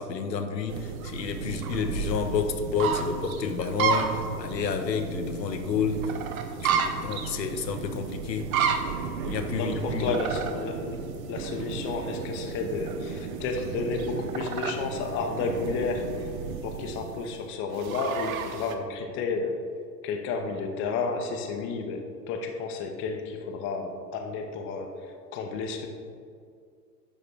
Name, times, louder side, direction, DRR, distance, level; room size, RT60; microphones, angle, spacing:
voice 1, 0.0-6.1 6.6-8.5 9.2-10.2, left 6 dB, 80° left, 7 dB, 0.7 m, -30 dB
sound 1, 0.7-18.7, right 6 dB, 55° right, 0.7 m, -32 dB
voice 2, 9.5-11.0 11.3-16.1 16.6-19.6 20.0-25.1 25.3-25.9, left 4 dB, 25° left, 4 dB, 0.6 m, -31 dB
10.0 x 3.8 x 3.4 m, 2.2 s
figure-of-eight pair, 95°, 50 cm